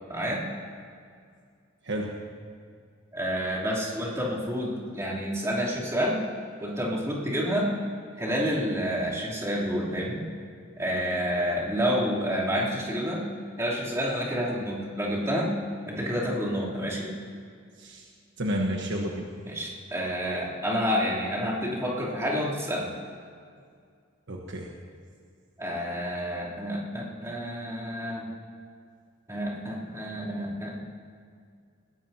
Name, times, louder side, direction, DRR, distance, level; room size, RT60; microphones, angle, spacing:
voice 1, 0.1-0.4 3.1-6.2 6.6-7.7 8.2-10.2 10.8-13.3 13.6-15.5 15.9-17.1 19.5-22.9 25.6-28.2 29.3-30.8, equal, 15° right, -7 dB, 3.4 m, -29 dB
voice 2, 17.8-18.1 18.4-19.3 24.3-24.7, equal, 60° right, 0 dB, 1.3 m, -30 dB
21.0 x 17.0 x 2.9 m, 2.2 s
head